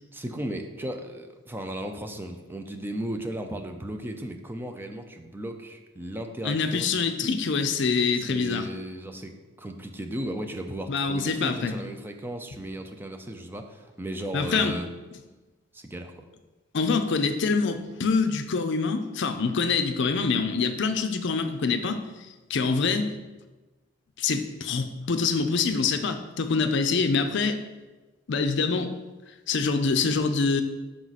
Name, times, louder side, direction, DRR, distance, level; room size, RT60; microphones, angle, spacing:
voice 1, 0.1-6.9 8.2-9.3 9.6-14.9 15.7-16.3, right 1 dB, 10° right, 5 dB, 0.5 m, -35 dB
voice 2, 6.4-8.7 10.9-11.8 14.3-14.8 16.7-22.0 22.5-23.1 24.2-27.6 28.3-28.9 29.5-30.6, left 4 dB, 60° left, 8 dB, 0.5 m, -25 dB
6.2 x 4.8 x 4.1 m, 1.2 s
head